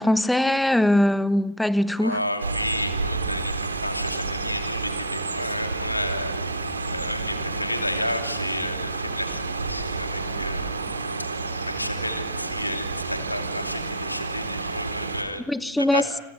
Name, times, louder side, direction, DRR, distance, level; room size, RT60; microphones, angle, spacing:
voice 1, 0.0-2.2 15.5-16.0, left 1 dB, 5° left, 1.1 m, -21 dB
voice 2, 2.0-10.8 11.2-15.4 15.8-16.1, left 1 dB, 85° left, 2.8 m, -32 dB
sound 1, 2.4-15.2, right 3 dB, 75° right, 3.4 m, -30 dB
30.0 x 30.0 x 6.5 m
figure-of-eight pair, 90°, 0 cm